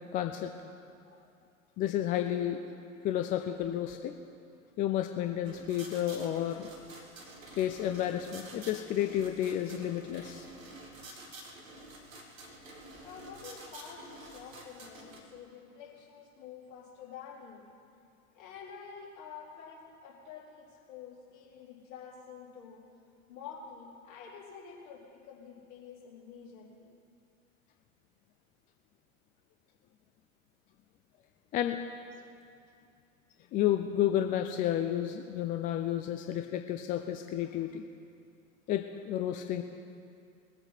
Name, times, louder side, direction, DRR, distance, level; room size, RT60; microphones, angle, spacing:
voice 1, 0.1-0.5 1.8-2.6 3.0-4.1 4.8-6.7 7.6-10.4 31.5-31.8 33.5-37.8 38.7-39.6, left 11 dB, 20° left, 6 dB, 0.4 m, -31 dB
sound 1, 5.4-15.2, right 2 dB, 70° right, 2.2 m, -49 dB
voice 2, 13.0-17.7 18.4-22.8 23.3-26.9, left 6 dB, 45° left, -5 dB, 4.1 m, -48 dB
20.5 x 7.9 x 5.8 m, 2.4 s
figure-of-eight pair, 85°, 41 cm